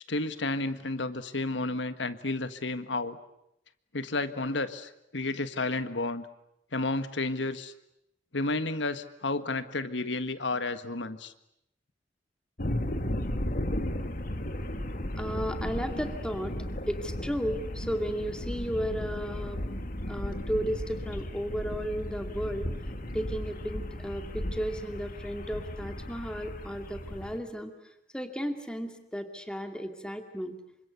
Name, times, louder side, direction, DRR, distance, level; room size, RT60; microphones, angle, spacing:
voice 1, 0.1-3.2 3.9-6.3 6.7-7.7 8.3-11.3, left 2 dB, 80° left, 10 dB, 1.6 m, -31 dB
sound 1, 12.6-27.4, left 1 dB, 50° left, 2.2 m, -35 dB
voice 2, 15.2-16.5 16.9-19.6 20.0-22.7 23.1-27.7 28.1-30.5, equal, 5° left, 5 dB, 2.5 m, -34 dB
28.0 x 25.5 x 8.2 m, 0.79 s
head